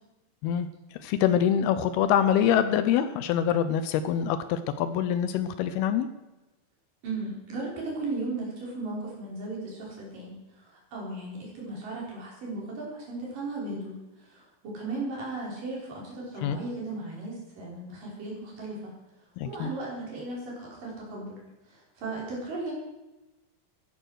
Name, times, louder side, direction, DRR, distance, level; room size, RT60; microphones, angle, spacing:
voice 1, 0.4-6.1 16.4-16.6 19.4-19.7, left 9 dB, 80° left, 12 dB, 2.3 m, -25 dB
voice 2, 7.0-18.9 19.5-21.4 21.7-22.7, right 2 dB, 50° right, -4 dB, 6.1 m, -36 dB
15.0 x 11.0 x 6.4 m, 1.0 s
omnidirectional pair, 5.1 m